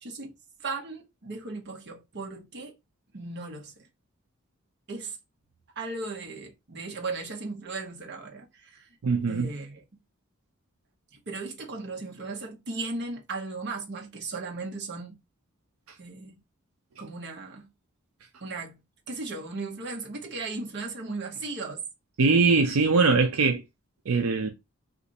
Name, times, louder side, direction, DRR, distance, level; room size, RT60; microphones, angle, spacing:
voice 1, 0.0-2.8 3.1-3.9 4.9-5.2 5.8-8.9 9.3-9.8 11.1-15.2 16.0-16.4 17.0-17.7 18.4-18.8 19.1-21.9, right 3 dB, 55° right, 0.8 m, -36 dB
voice 2, 9.0-9.5 22.2-23.6 24.1-24.5, right 4 dB, 85° right, 0.5 m, -22 dB
2.5 x 2.5 x 3.9 m
head